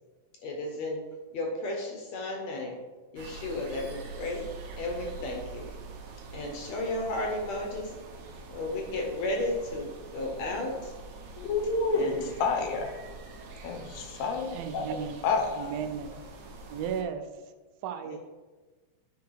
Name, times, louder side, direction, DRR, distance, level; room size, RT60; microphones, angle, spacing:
voice 1, 0.4-1.0 1.3-2.8 3.1-4.5 4.8-5.7 6.3-7.9 8.5-10.9 11.9-12.3 18.1-18.2, left 2 dB, 65° left, 1 dB, 2.0 m, -33 dB
sound 1, 3.2-17.0, right 3 dB, 60° right, 2.2 m, -45 dB
voice 2, 11.4-13.0 13.6-15.7, left 4 dB, 80° left, 4 dB, 2.6 m, -29 dB
voice 3, 14.5-15.2 15.5-16.2 16.7-17.3 17.8-18.2, right 7 dB, 85° right, 8 dB, 2.5 m, -34 dB
10.0 x 4.7 x 4.7 m, 1.3 s
omnidirectional pair, 4.1 m